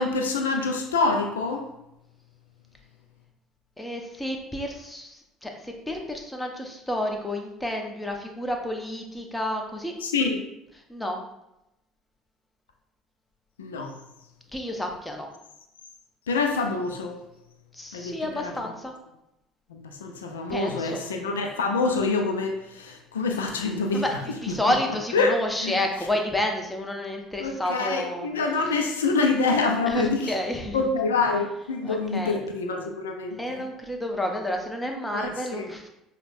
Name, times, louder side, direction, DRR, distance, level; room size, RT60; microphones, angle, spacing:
voice 1, 0.0-1.6 10.0-10.4 13.6-13.9 16.3-17.2 17.9-18.5 19.7-24.0 25.1-25.3 25.6-25.7 27.4-30.3 30.7-33.6 35.1-35.7, left 3 dB, 85° left, 3 dB, 0.4 m, -26 dB
voice 2, 3.8-9.9 10.9-11.2 14.5-15.3 17.7-18.9 20.5-21.0 23.9-28.3 29.9-30.8 31.8-32.4 33.4-35.9, left 1 dB, 10° left, 2 dB, 0.7 m, -30 dB
5.3 x 2.1 x 2.5 m, 0.86 s
hypercardioid pair, 65°, 0 cm